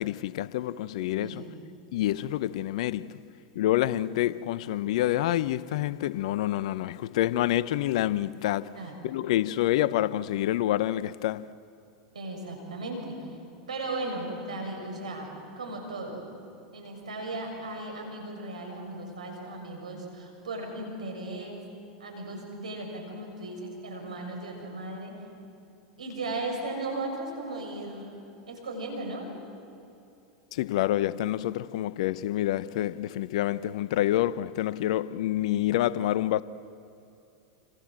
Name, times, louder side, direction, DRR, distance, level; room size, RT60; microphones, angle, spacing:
voice 1, 0.0-1.4 1.9-3.2 3.5-8.8 9.0-11.5 30.5-36.4, left 14 dB, 65° left, 0.8 m, -27 dB
voice 2, 12.1-13.3 13.7-15.3 15.6-16.2 16.7-21.6 22.0-25.2 26.0-28.1 28.5-29.3, right 2 dB, 85° right, 6.9 m, -36 dB
29.0 x 26.5 x 7.7 m
hypercardioid pair, 95°, 4 cm